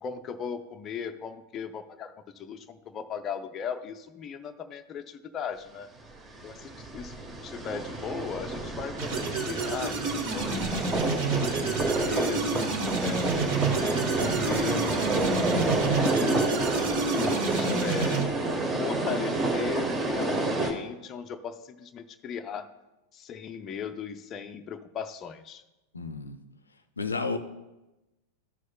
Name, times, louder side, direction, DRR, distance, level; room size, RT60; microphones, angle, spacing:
voice 1, 0.0-5.9 6.4-10.0 10.3-11.0 12.0-12.7 13.0-16.2 17.0-18.3 18.8-22.7 23.1-25.6, left 6 dB, 30° left, 7 dB, 0.5 m, -37 dB
sound 1, 6.3-20.7, right 2 dB, 20° right, 1.1 m, -29 dB
sound 2, 9.0-18.2, right 4 dB, 45° right, 1.3 m, -30 dB
voice 2, 25.9-26.4 27.0-27.4, left 4 dB, 75° left, 9 dB, 0.5 m, -31 dB
14.0 x 6.3 x 2.2 m, 1.0 s
figure-of-eight pair, 90°, 0 cm